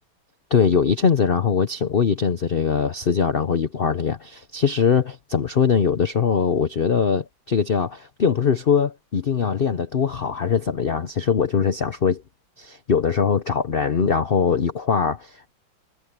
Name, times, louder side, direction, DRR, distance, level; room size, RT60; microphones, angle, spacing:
voice 1, 0.5-12.2 12.6-15.5, left 6 dB, 90° left, 0.5 m, -21 dB
omnidirectional pair, 2.2 m